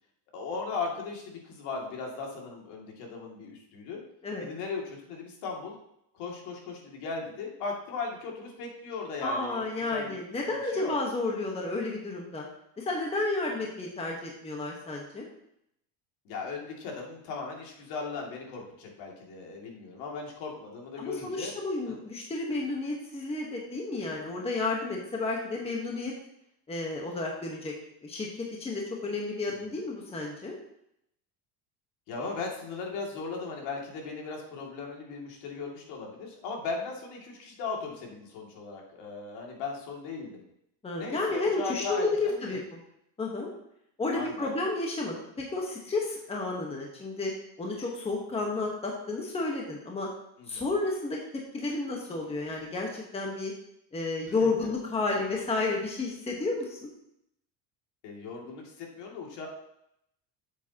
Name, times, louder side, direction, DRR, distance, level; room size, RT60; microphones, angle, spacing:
voice 1, 0.3-4.0 4.4-5.7 6.1-9.6 9.9-10.2 10.6-10.9 16.2-21.5 21.9-22.0 29.5-29.7 32.1-40.4 41.0-42.6 44.1-44.5 50.4-50.7 54.3-54.7 58.0-59.5, left 4 dB, 65° left, -1 dB, 2.5 m, -37 dB
voice 2, 9.2-12.5 12.8-15.3 21.0-26.1 26.7-27.7 28.0-28.3 28.6-30.5 40.8-42.6 43.2-43.5 44.0-47.3 47.6-50.1 50.5-51.2 51.5-53.5 53.9-56.9, left 3 dB, 15° left, -1 dB, 1.2 m, -31 dB
8.5 x 7.7 x 2.9 m, 0.76 s
cardioid pair, 145°, 45 cm